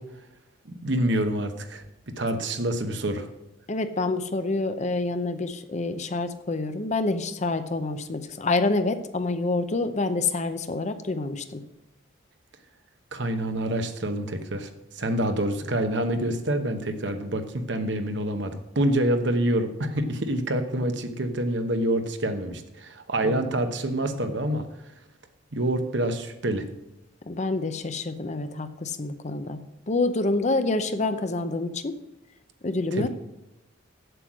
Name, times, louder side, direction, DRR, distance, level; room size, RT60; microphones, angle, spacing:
voice 1, 0.8-1.8 2.2-3.3 13.1-14.7 15.0-24.6 25.5-26.6 32.9-33.1, right 1 dB, 60° right, 7 dB, 1.0 m, -27 dB
voice 2, 3.7-11.6 23.2-23.4 27.2-29.6 29.9-31.9 32.6-33.1, left 3 dB, 35° left, 10 dB, 0.6 m, -27 dB
7.9 x 7.8 x 6.1 m, 0.96 s
head